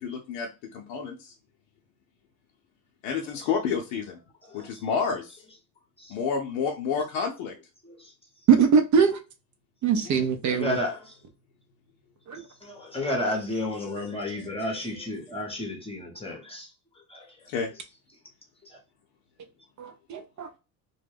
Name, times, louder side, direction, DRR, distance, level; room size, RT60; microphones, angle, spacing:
voice 1, 0.0-1.3 3.0-4.2 4.5-5.4 6.1-7.5 17.5-17.7, left 6 dB, 80° left, 0.7 m, -29 dB
voice 2, 8.5-9.2 9.8-10.8 12.3-12.4 19.8-20.5, right 6 dB, 40° right, 0.4 m, -22 dB
voice 3, 10.5-11.2 12.6-16.7 17.1-17.3 18.7-18.8, left 1 dB, 10° left, 0.8 m, -32 dB
2.2 x 2.1 x 3.3 m
supercardioid pair, 80°, 50 cm